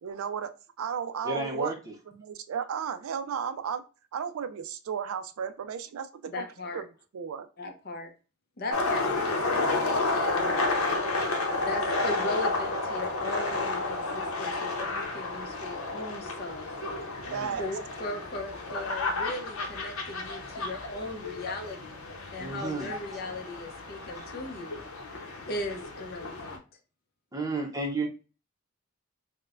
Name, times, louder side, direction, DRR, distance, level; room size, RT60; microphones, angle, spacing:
voice 1, 0.0-0.5 0.8-3.8 4.1-6.5 6.7-6.8 7.1-7.5 17.2-17.6, right 7 dB, 85° right, 10 dB, 0.4 m, -34 dB
voice 2, 1.2-1.9 17.3-17.5 22.4-22.9 27.3-28.1, right 2 dB, 15° right, 2 dB, 0.7 m, -32 dB
voice 3, 6.2-6.8 7.6-8.1 8.6-10.5 11.5-16.7 17.6-22.0 22.3-24.8 25.1-26.6, left 2 dB, 50° left, 4 dB, 0.6 m, -38 dB
sound 1, 8.7-26.6, left 2 dB, 85° left, 0.7 m, -31 dB
4.3 x 2.1 x 2.4 m, 0.34 s
head